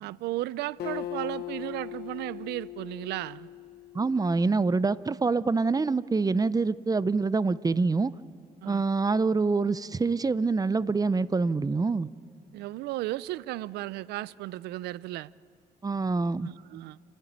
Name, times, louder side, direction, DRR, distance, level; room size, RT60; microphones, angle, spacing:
voice 1, 0.0-3.5 8.6-8.8 12.5-15.3 16.4-17.0, right 16 dB, 90° right, 0.5 m, -35 dB
Acoustic guitar, 0.8-4.4, left 13 dB, 75° left, 0.9 m, -39 dB
voice 2, 3.9-8.1 8.7-12.1 15.8-16.5, right 4 dB, 20° right, 0.6 m, -26 dB
29.0 x 11.0 x 9.4 m
cardioid pair, 75°, 16 cm